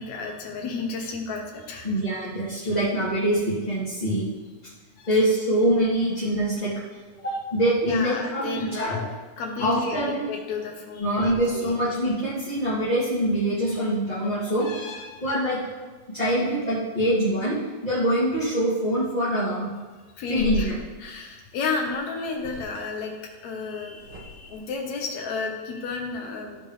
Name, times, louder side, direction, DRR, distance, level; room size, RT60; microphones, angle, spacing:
voice 1, 0.0-1.9 5.0-5.2 7.8-9.1 9.4-11.7 14.6-15.2 20.2-26.6, left 4 dB, 70° left, 1 dB, 2.4 m, -32 dB
voice 2, 1.8-4.3 5.1-6.7 7.2-9.0 9.6-10.2 11.0-14.7 15.2-15.6 16.1-17.6 17.8-19.7 20.3-20.7, right 1 dB, 15° left, -12 dB, 2.1 m, -24 dB
sound 1, 20.3-20.7 21.8-22.0 22.3-22.8 23.9-24.6, left 2 dB, 50° right, 1.5 m, -35 dB
15.0 x 5.3 x 3.2 m, 1.3 s
omnidirectional pair, 3.5 m